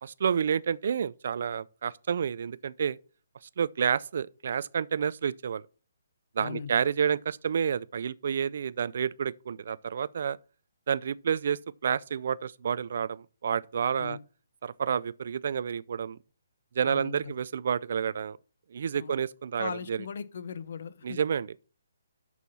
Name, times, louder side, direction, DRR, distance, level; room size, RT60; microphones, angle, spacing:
voice 1, 0.0-3.0 3.6-5.6 6.4-10.4 10.9-14.2 14.6-16.2 16.8-18.4 18.7-20.0 21.0-21.7, right 7 dB, 55° right, 0.4 m, -29 dB
voice 2, 16.8-17.3 18.9-19.1 19.6-21.2, left 7 dB, 60° left, 0.9 m, -39 dB
6.8 x 6.3 x 5.5 m
hypercardioid pair, 160°, 0 cm